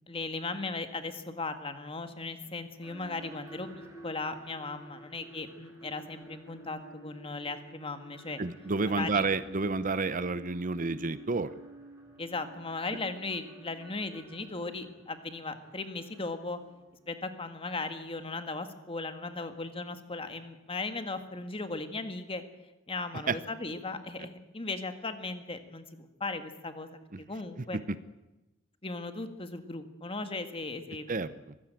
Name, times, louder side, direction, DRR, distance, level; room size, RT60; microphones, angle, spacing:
voice 1, 0.1-8.4 8.9-9.2 12.2-16.6 17.1-22.4 22.9-27.8 28.8-31.4, left 3 dB, 30° left, 8 dB, 1.8 m, -37 dB
sound 1, 2.8-17.1, right 1 dB, 15° right, 6.4 m, -51 dB
voice 2, 8.4-11.5 23.3-23.4 27.1-27.2 27.7-28.0 31.1-31.5, right 3 dB, 40° right, 15 dB, 0.7 m, -30 dB
23.5 x 15.5 x 9.0 m, 0.99 s
head